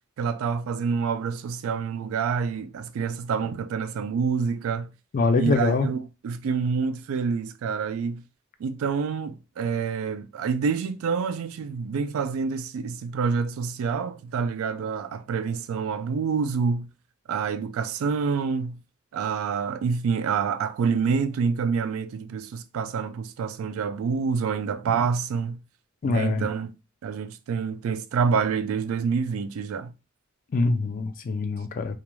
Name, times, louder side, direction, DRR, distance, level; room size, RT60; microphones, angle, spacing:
voice 1, 0.2-4.9 5.4-8.2 8.6-16.9 17.3-18.7 19.1-25.6 26.0-26.7 27.0-29.9, right 5 dB, 80° right, 0.3 m, -27 dB
voice 2, 5.1-5.9 26.0-26.5 30.5-32.0, left 3 dB, 40° left, 0.3 m, -24 dB
2.4 x 2.2 x 3.0 m
head